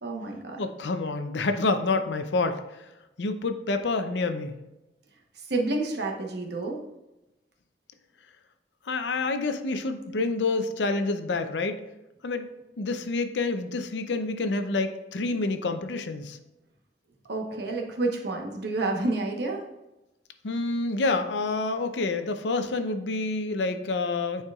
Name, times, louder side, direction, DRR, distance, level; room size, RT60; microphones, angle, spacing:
voice 1, 0.0-0.6 5.5-6.8 17.3-19.6, right 2 dB, 65° right, 1 dB, 1.0 m, -29 dB
voice 2, 0.6-2.6 3.2-4.5 8.9-11.8 12.2-12.5 12.8-16.4 20.4-24.4, left 3 dB, 75° left, 8 dB, 0.6 m, -28 dB
9.6 x 4.4 x 2.4 m, 0.97 s
head